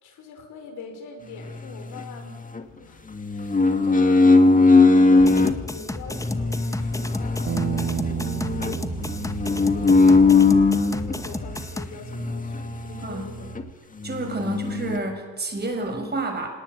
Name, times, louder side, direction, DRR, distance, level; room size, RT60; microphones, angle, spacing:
voice 1, 0.0-2.4 2.7-9.0 9.6-13.6 14.3-14.6, left 4 dB, 80° left, 5 dB, 5.8 m, -42 dB
sound 1, 1.4-2.6 3.1-5.6 6.1-11.2 12.0-13.2 13.5-13.6 14.0-15.0, left 3 dB, 25° left, 2.2 m, -20 dB
sound 2, 5.2-11.9, left 2 dB, 10° left, 1.7 m, -33 dB
Bass guitar, 7.5-13.7, right 9 dB, 50° right, 1.2 m, -34 dB
voice 2, 13.0-13.3 14.0-16.5, right 2 dB, 35° right, 4 dB, 6.7 m, -29 dB
26.0 x 19.0 x 9.7 m, 1.5 s
cardioid pair, 90°, 30 cm